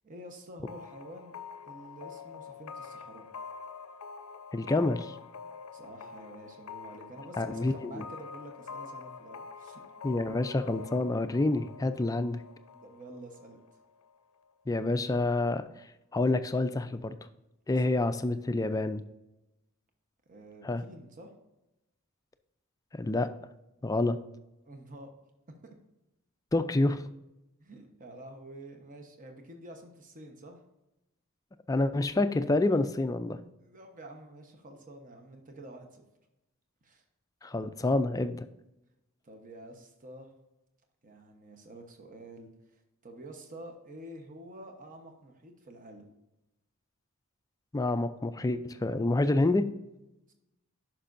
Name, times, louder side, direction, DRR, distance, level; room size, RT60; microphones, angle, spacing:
voice 1, 0.0-1.3 1.7-3.3 5.7-9.8 12.7-13.6 17.7-17.8 20.3-21.3 24.6-25.1 25.6-25.7 27.6-30.6 33.6-36.0 36.8-37.0 39.2-40.3 41.0-46.1 50.3-50.4, right 1 dB, 35° right, 4 dB, 1.1 m, -48 dB
sound 1, 0.7-14.2, left 6 dB, 75° left, 0.5 m, -46 dB
voice 2, 4.5-5.2 7.4-8.0 10.0-12.4 14.7-15.6 16.1-17.2 17.7-19.0 20.6-20.8 22.9-23.3 23.8-24.2 26.5-27.1 31.7-33.4 37.4-38.5 47.7-49.7, left 2 dB, 15° left, 10 dB, 0.3 m, -28 dB
9.9 x 6.0 x 2.6 m, 0.94 s
head